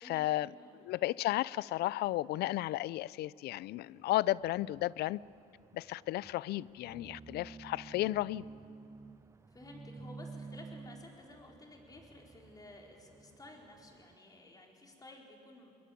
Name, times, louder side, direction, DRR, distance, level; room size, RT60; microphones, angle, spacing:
voice 1, 0.0-0.5 0.7-5.2 5.7-8.4, left 16 dB, 75° left, 0.5 m, -33 dB
voice 2, 0.6-0.9 9.5-15.7, left 2 dB, 20° left, 4.4 m, -54 dB
sound 1, 3.7-14.2, right 4 dB, 15° right, 0.5 m, -52 dB
22.5 x 21.0 x 8.6 m
cardioid pair, 110°, 17 cm